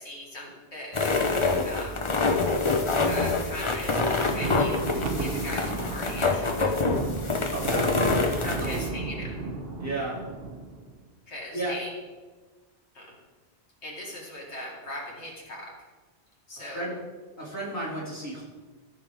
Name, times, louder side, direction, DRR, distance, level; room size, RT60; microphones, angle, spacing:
voice 1, 0.0-2.0 3.1-6.7 8.6-9.3 11.3-11.9 12.9-13.2 13.8-15.7 16.5-16.9, left 1 dB, 90° left, -2 dB, 2.2 m, -39 dB
sound 1, 0.9-8.9, left 3 dB, 30° left, 0.8 m, -26 dB
Thunder, 3.7-10.9, right 3 dB, 60° right, 1.4 m, -33 dB
voice 2, 7.5-8.0 8.3-8.7 9.8-10.2 11.5-11.8 16.7-17.0 17.4-18.4, right 1 dB, 15° right, -7 dB, 2.6 m, -33 dB
14.0 x 6.0 x 3.5 m, 1.3 s
omnidirectional pair, 1.1 m